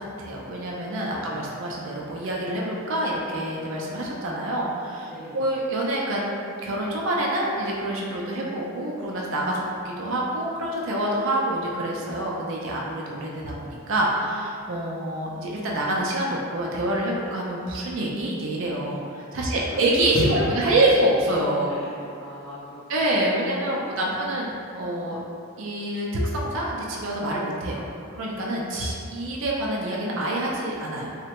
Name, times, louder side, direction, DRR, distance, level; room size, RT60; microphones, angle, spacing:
voice 1, 0.0-6.2 6.6-21.7 22.9-25.2 25.6-27.9 28.2-31.2, right 1 dB, 65° right, -3 dB, 0.4 m, -26 dB
voice 2, 1.1-1.6 5.0-5.5 19.7-19.8 21.6-23.3 23.7-24.1, left 1 dB, ahead, -12 dB, 0.8 m, -44 dB
3.3 x 2.1 x 2.9 m, 2.5 s
head